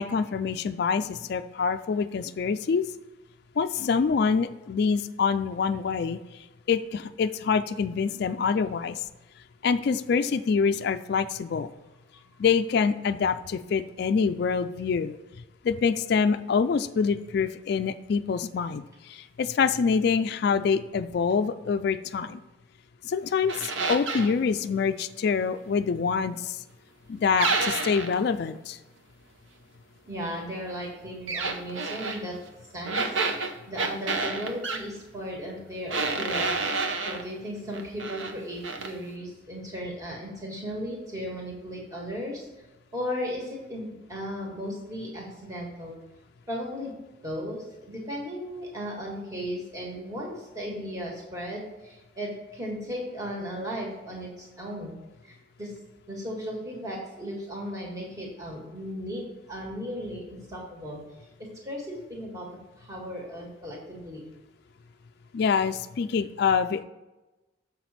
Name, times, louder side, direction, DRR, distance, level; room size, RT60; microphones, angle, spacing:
voice 1, 0.0-2.8 3.6-6.2 6.7-9.0 9.6-11.7 12.4-15.2 15.6-22.4 23.0-26.6 27.1-28.8 65.3-66.8, left 5 dB, 55° left, 9 dB, 0.3 m, -26 dB
sound 1, 23.5-24.3 27.4-28.2 31.3-32.2 32.9-34.8 35.9-37.2 37.7-38.3 38.6-38.9, right 4 dB, 80° right, 0.8 m, -29 dB
voice 2, 30.0-32.3 32.7-36.5 37.0-42.5 42.9-45.9 46.5-46.9 47.2-54.9 55.2-55.7 56.1-61.0 61.4-62.5 62.8-64.2, equal, 15° right, -3 dB, 1.6 m, -36 dB
7.1 x 6.0 x 4.2 m, 1.1 s
head